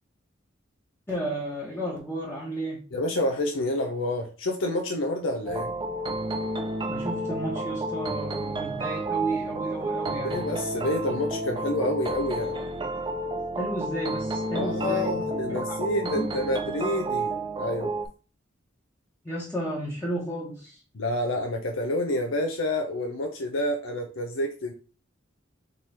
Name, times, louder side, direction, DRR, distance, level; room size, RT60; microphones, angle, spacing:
voice 1, 1.1-2.8 6.9-10.4 13.6-15.2 15.5-16.3 19.2-20.8, right 1 dB, 10° left, 1.1 m, -33 dB
voice 2, 2.9-5.7 10.2-12.6 14.5-17.9 20.9-24.7, left 1 dB, 80° left, 0.7 m, -28 dB
sound 1, 5.5-18.1, right 2 dB, 25° right, 0.4 m, -31 dB
3.8 x 3.2 x 4.2 m
head